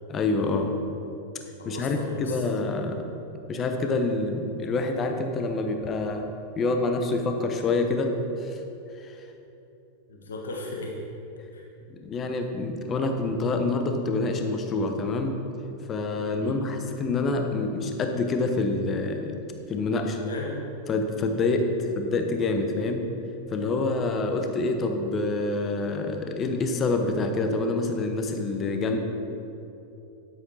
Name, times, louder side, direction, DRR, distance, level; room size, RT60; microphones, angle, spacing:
voice 1, 0.1-0.7 1.6-3.0 3.5-6.3 6.6-8.1 8.4-8.6 9.0-9.1 11.9-15.3 15.9-19.4 19.7-20.2 20.9-21.7 22.0-23.0 23.5-29.0, left 3 dB, 25° left, 5 dB, 0.9 m, -27 dB
voice 2, 1.6-2.4 10.1-11.0 11.5-11.7 16.3-16.7 20.0-20.6 21.7-21.9, left 2 dB, 70° left, -1 dB, 1.4 m, -36 dB
9.7 x 8.2 x 4.2 m, 2.9 s
figure-of-eight pair, 90°, 0 cm